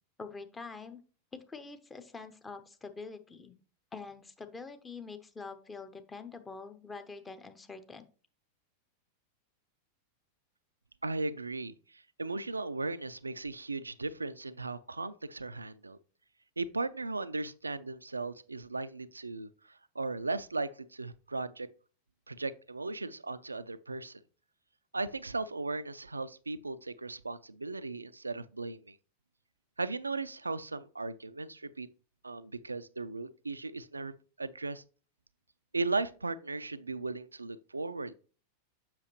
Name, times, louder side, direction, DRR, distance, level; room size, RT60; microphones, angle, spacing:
voice 1, 0.2-1.0 1.3-3.5 3.9-8.0, left 4 dB, 15° left, 0.8 m, -45 dB
voice 2, 11.0-16.0 16.6-21.7 22.3-24.2 24.9-29.0 29.8-31.9 32.2-34.8 35.7-38.1, right 3 dB, 80° right, 0.3 m, -37 dB
7.4 x 6.0 x 3.0 m
figure-of-eight pair, 90°, 0 cm